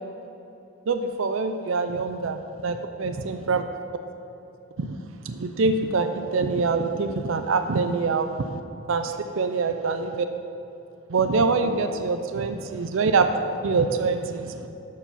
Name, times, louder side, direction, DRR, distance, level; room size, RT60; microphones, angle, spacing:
voice 1, 0.9-3.6 4.8-5.0 5.2-8.5 8.9-10.3 11.1-13.3 13.6-14.6, right 4 dB, 65° right, 7 dB, 0.5 m, -25 dB
12.5 x 4.8 x 5.7 m, 2.8 s
head